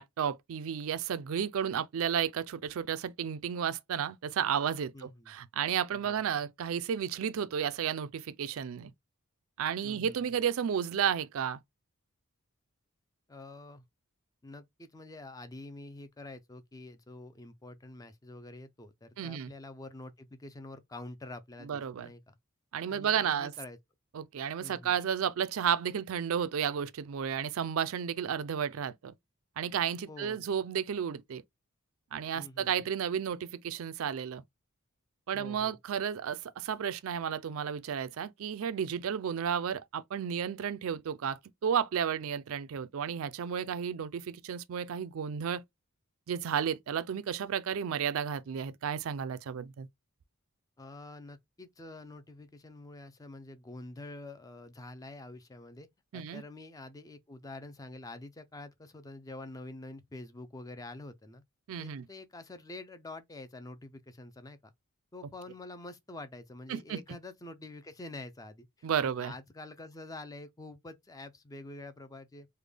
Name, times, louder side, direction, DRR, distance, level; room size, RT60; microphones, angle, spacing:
voice 1, 0.0-8.9 9.6-11.6 19.2-19.5 21.6-22.1 22.7-23.5 24.1-29.1 29.6-31.4 32.1-34.4 35.3-45.6 46.3-49.9 56.1-56.4 61.7-62.1 66.7-67.0 68.8-69.3, right 8 dB, 65° right, 0.4 m, -32 dB
voice 2, 4.9-5.3 5.9-6.2 9.8-10.4 13.3-13.8 14.4-22.4 22.9-23.8 24.6-24.9 30.1-30.5 32.3-32.9 35.3-35.8 50.8-55.9 56.1-61.4 61.8-64.7 65.1-72.5, left 2 dB, 15° left, 0.4 m, -47 dB
3.3 x 2.2 x 3.4 m
head